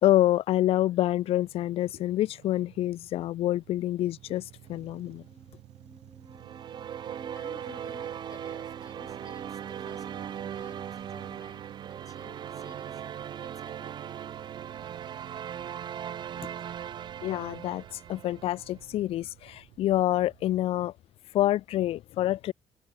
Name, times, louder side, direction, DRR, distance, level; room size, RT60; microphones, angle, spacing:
voice 1, 0.0-4.4 4.7-5.2 17.2-17.8 18.1-20.9 21.3-22.5, left 14 dB, 70° left, 0.6 m, -27 dB
sound 1, 1.2-20.6, right 15 dB, 90° right, 1.1 m, -51 dB
sound 2, 4.6-11.4, right 1 dB, 5° right, 4.4 m, -55 dB
sound 3, 6.3-18.7, right 9 dB, 50° right, 0.7 m, -39 dB
voice 2, 7.3-14.0, left 6 dB, 35° left, 7.3 m, -54 dB
cardioid pair, 120°, 10 cm